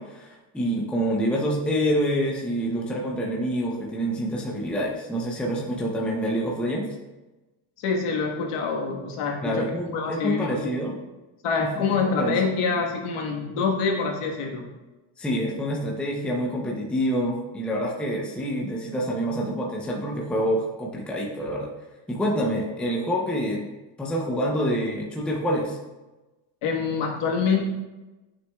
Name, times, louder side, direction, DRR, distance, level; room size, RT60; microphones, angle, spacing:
voice 1, 0.0-6.9 9.4-10.9 11.6-12.4 15.2-21.7 22.1-23.7 24.0-25.8, equal, ahead, -2 dB, 0.6 m, -27 dB
voice 2, 7.8-10.9 11.4-14.6 26.6-27.7, left 5 dB, 80° left, 0 dB, 1.5 m, -26 dB
9.4 x 6.2 x 2.3 m, 1.1 s
cardioid pair, 155°, 49 cm